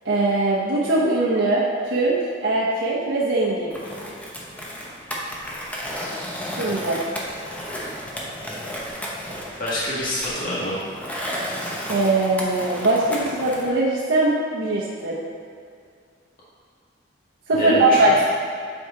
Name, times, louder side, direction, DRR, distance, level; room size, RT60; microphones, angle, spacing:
voice 1, 0.0-2.2 2.4-3.7 6.6-7.0 11.9-15.2 17.5-18.2, right 2 dB, 75° right, -7 dB, 0.9 m, -21 dB
Skateboard, 3.7-13.7, equal, 10° left, 0.8 m, -33 dB
voice 2, 9.6-10.8 17.5-18.2, equal, 50° left, -8 dB, 1.6 m, -26 dB
8.3 x 4.7 x 3.8 m, 2.2 s
head